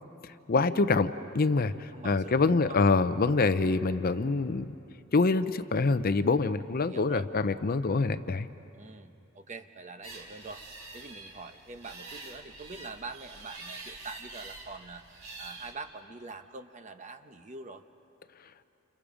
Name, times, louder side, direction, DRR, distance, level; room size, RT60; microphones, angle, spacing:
voice 1, 0.2-4.7 5.1-8.5, left 3 dB, 45° left, 12 dB, 0.6 m, -26 dB
voice 2, 1.9-2.8 6.8-7.3 8.7-10.6 10.9-17.8, right 3 dB, 35° right, 8 dB, 0.9 m, -44 dB
sound 1, 10.0-15.7, right 3 dB, 85° right, 3.3 m, -46 dB
29.5 x 28.5 x 5.1 m, 2.8 s
head